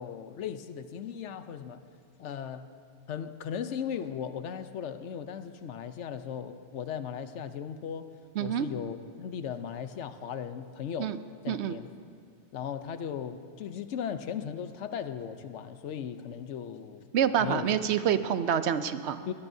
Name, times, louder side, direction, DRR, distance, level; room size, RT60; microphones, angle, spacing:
voice 1, 0.0-1.8 2.2-2.7 3.1-8.1 8.4-11.1 11.4-11.9 12.5-17.1 17.4-17.8 19.3-19.4, left 8 dB, 85° left, 10 dB, 1.0 m, -37 dB
voice 2, 8.4-8.7 11.0-11.2 11.5-11.8 17.1-19.3, right 9 dB, 75° right, 12 dB, 0.9 m, -27 dB
22.5 x 17.5 x 2.7 m, 2.4 s
omnidirectional pair, 1.2 m